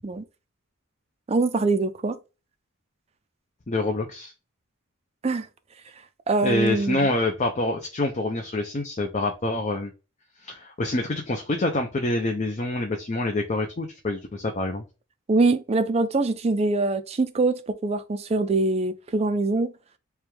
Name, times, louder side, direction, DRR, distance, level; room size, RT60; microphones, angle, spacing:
voice 1, 1.3-2.2 5.2-5.5 6.3-7.1 15.3-19.7, right 3 dB, 30° right, 0.4 m, -23 dB
voice 2, 3.7-4.3 6.4-9.9 10.4-14.8, left 2 dB, 35° left, 0.6 m, -26 dB
3.4 x 2.3 x 4.4 m
head